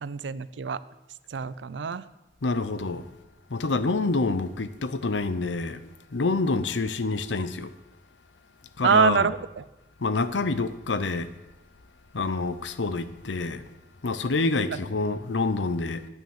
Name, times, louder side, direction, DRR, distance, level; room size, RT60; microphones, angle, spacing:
voice 1, 0.0-0.8 1.3-2.0 8.8-9.4, right 6 dB, 85° right, 0.5 m, -24 dB
voice 2, 2.4-3.1 3.5-5.8 6.1-7.7 8.8-9.3 10.0-11.3 12.1-13.6 14.0-16.1, left 3 dB, 90° left, 0.8 m, -27 dB
9.2 x 9.0 x 7.2 m
head